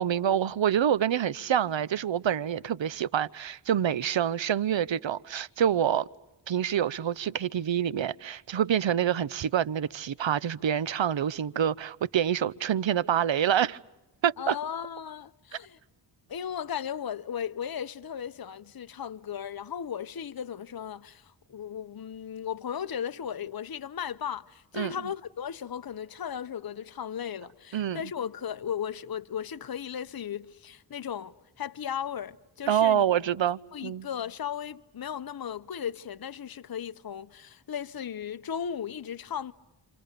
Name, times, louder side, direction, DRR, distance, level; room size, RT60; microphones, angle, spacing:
voice 1, 0.0-6.1 6.5-13.8 14.2-14.6 24.7-24.9 27.7-28.0 32.7-34.1, right 9 dB, 65° right, 0.8 m, -26 dB
voice 2, 14.4-15.8 16.3-33.0 33.7-39.5, left 8 dB, 45° left, 0.9 m, -36 dB
28.0 x 27.0 x 6.8 m
cardioid pair, 50°, 50 cm